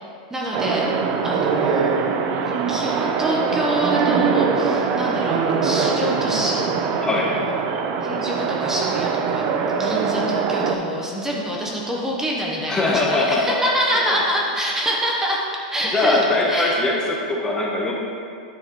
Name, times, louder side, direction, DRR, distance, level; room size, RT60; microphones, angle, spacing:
voice 1, 0.3-0.9 1.2-1.9 2.4-6.9 7.1-7.5 8.0-16.8, equal, 10° right, -3 dB, 0.9 m, -26 dB
sound 1, 0.5-10.7, right 5 dB, 40° right, 0.6 m, -22 dB
voice 2, 7.0-7.3 12.7-13.6 14.0-14.2 15.8-17.9, left 2 dB, 15° left, -2 dB, 1.0 m, -21 dB
10.0 x 6.3 x 3.1 m, 2.4 s
supercardioid pair, 135°, 5 cm